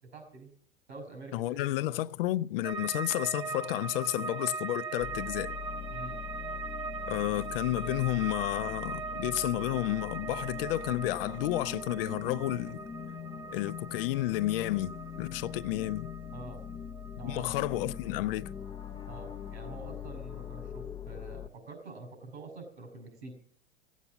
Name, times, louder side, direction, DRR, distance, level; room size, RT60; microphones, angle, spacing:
voice 1, 0.0-0.5 0.9-1.7 5.9-6.2 16.3-16.6 17.2-17.5 19.1-23.4, right 2 dB, 80° right, 5.8 m, -46 dB
voice 2, 1.3-5.6 7.1-12.8 13.5-16.1 17.2-18.5, left 16 dB, 60° left, 0.6 m, -31 dB
sound 1, 2.6-19.8 20.0-20.8, right 5 dB, 10° right, 0.9 m, -41 dB
sound 2, 5.0-21.5, left 8 dB, 15° left, 0.6 m, -42 dB
16.5 x 8.3 x 7.1 m
hypercardioid pair, 100°, 32 cm